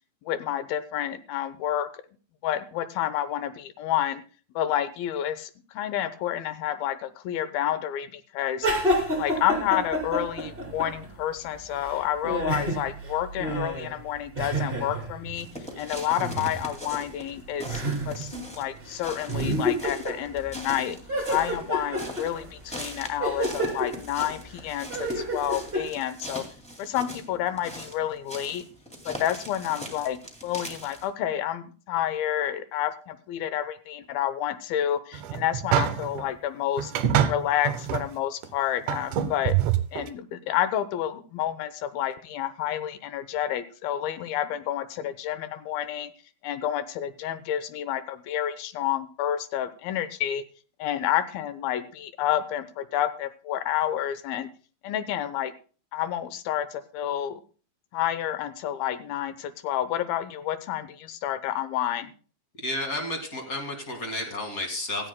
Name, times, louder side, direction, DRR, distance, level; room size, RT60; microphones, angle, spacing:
voice 1, 0.3-1.9 2.4-4.2 4.6-8.7 9.2-15.5 15.8-21.0 21.3-26.4 26.8-28.7 29.1-36.9 37.3-39.6 39.9-46.1 46.4-50.4 50.8-54.5 54.8-55.5 55.9-57.4 57.9-62.1, left 11 dB, 80° left, 12 dB, 2.7 m, -29 dB
sound 1, 8.6-11.2 11.5-15.4 16.1-16.6 17.0-17.1 17.6-18.5 18.8-18.9 19.3-20.7 21.1-25.9, right 1 dB, 15° right, 2.8 m, -30 dB
sound 2, 15.3-31.1, equal, 5° left, 1.2 m, -41 dB
sound 3, 35.1-36.2 36.8-38.1 38.4-38.5 38.9-40.1, right 10 dB, 75° right, 2.1 m, -25 dB
voice 2, 62.6-65.1, left 1 dB, 30° left, 3 dB, 1.9 m, -31 dB
17.0 x 13.5 x 2.2 m, 0.38 s
omnidirectional pair, 4.2 m